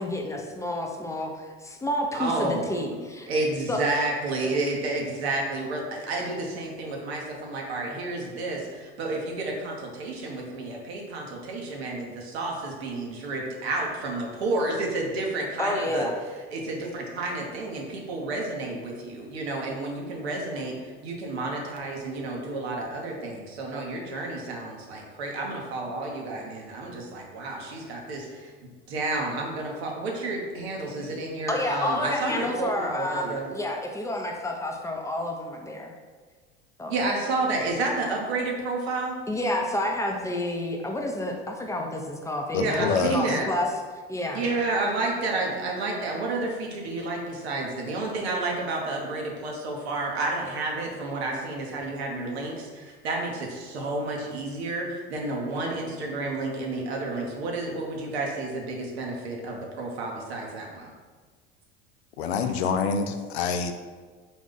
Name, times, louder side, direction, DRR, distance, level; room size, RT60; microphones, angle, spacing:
voice 1, 0.0-3.3 3.7-3.8 4.4-4.5 15.6-16.2 31.5-35.9 36.8-36.9 39.3-43.7 44.1-44.4, left 1 dB, 10° left, 2 dB, 0.5 m, -29 dB
voice 2, 2.1-3.0 3.3-16.1 16.5-20.8 21.0-28.5 28.9-33.5 36.9-39.2 42.5-43.5 44.3-60.9 62.4-62.5, right 2 dB, 80° right, 0 dB, 0.9 m, -30 dB
voice 3, 42.5-43.4 62.2-63.7, left 6 dB, 85° left, 7 dB, 0.5 m, -26 dB
4.0 x 2.4 x 3.7 m, 1.4 s
hypercardioid pair, 80°, 31 cm